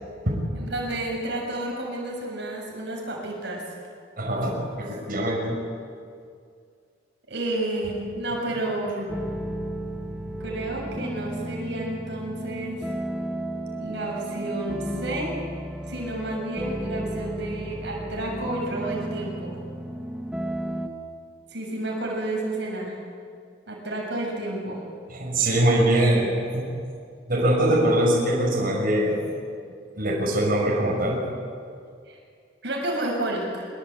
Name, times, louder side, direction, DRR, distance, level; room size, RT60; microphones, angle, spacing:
voice 1, 0.5-3.6 7.3-9.1 10.4-12.8 13.7-15.3 15.9-19.6 21.5-23.0 23.7-24.8 32.1-32.2 32.6-33.7, right 1 dB, 65° right, -1 dB, 6.8 m, -30 dB
voice 2, 4.2-5.6 25.1-26.7 27.3-29.2 29.9-31.3, right 1 dB, 50° right, -2 dB, 6.7 m, -22 dB
sound 1, 9.1-20.9, right 1 dB, 5° right, 2.0 m, -33 dB
25.5 x 23.5 x 8.5 m, 2.3 s
head